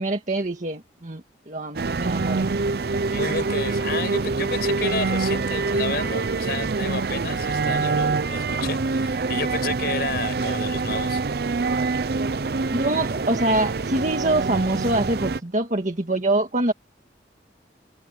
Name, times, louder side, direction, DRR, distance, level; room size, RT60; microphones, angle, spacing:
voice 1, 0.0-2.5 12.7-16.7, right 2 dB, 45° right, 1.9 m, -25 dB
sound 1, 1.7-15.4, right 4 dB, 60° right, 0.6 m, -25 dB
voice 2, 3.1-11.2, left 4 dB, 60° left, 6.3 m, -31 dB
head